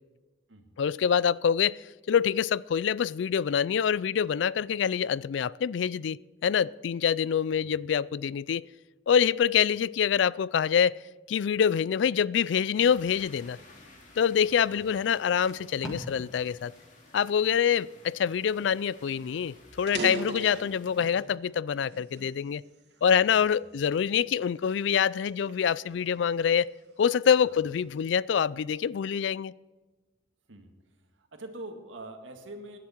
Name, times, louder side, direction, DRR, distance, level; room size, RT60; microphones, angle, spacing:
voice 1, 0.8-1.8 2.1-8.7 9.1-11.0 11.3-13.6 14.2-16.7 17.1-22.6 23.0-26.7 27.0-29.5, left 7 dB, 70° left, 0.3 m, -25 dB
Packing tape duct tape, 12.4-14.1 14.8-14.9 15.2-18.2 18.6-18.9, equal, 5° right, 2.5 m, -47 dB
sound 1, 12.7-21.1, left 2 dB, 40° left, 2.7 m, -55 dB
sound 2, 19.1-19.2 19.7-21.3 21.9-23.1 23.7-24.0 24.6-26.7, right 3 dB, 60° right, 2.7 m, -39 dB
voice 2, 22.9-23.6 27.4-27.6 30.5-30.7 31.2-32.8, right 2 dB, 85° right, 2.1 m, -45 dB
18.0 x 11.0 x 4.5 m
head